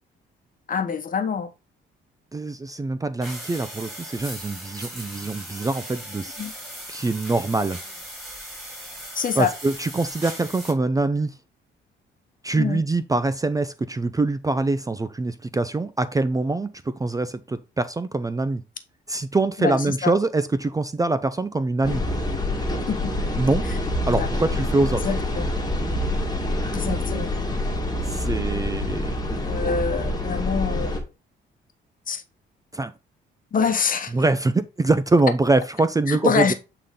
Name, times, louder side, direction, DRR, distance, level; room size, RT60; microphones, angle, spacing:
voice 1, 0.7-1.5 6.4-6.5 9.1-9.5 12.6-12.8 19.6-20.1 22.9-23.1 23.6-23.8 24.2-24.3 25.0-25.5 26.7-27.3 29.4-31.0 32.1-32.2 33.5-34.1 36.1-36.5, left 6 dB, 45° left, 1.1 m, -25 dB
voice 2, 2.3-6.4 6.9-7.8 9.4-11.3 12.4-16.7 17.0-18.6 19.1-22.0 23.4-23.6 24.1-25.0 28.1-29.1 32.7-32.9 34.1-36.5, right 3 dB, 15° right, 0.5 m, -24 dB
sound 1, 3.2-10.7, equal, ahead, 3.9 m, -38 dB
sound 2, 21.8-31.0, left 1 dB, 20° left, 1.8 m, -26 dB
8.2 x 3.9 x 3.7 m
cardioid pair, 90°, 20 cm